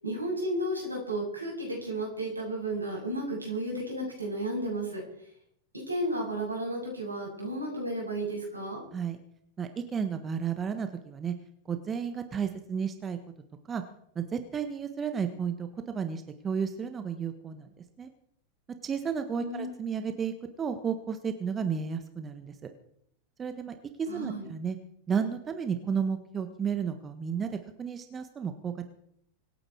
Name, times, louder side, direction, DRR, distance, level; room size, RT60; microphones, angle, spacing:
voice 1, 0.0-5.0 5.9-8.8 19.4-19.7 24.1-24.5, right 1 dB, 85° right, -1 dB, 7.3 m, -33 dB
voice 2, 9.6-11.3 11.6-13.2 13.7-13.8 14.1-17.7 18.0-18.1 18.8-20.3 20.6-22.7 23.4-24.8 25.1-28.9, right 6 dB, 20° right, 8 dB, 1.4 m, -32 dB
24.5 x 9.8 x 4.8 m, 0.70 s
figure-of-eight pair, 90°, 0 cm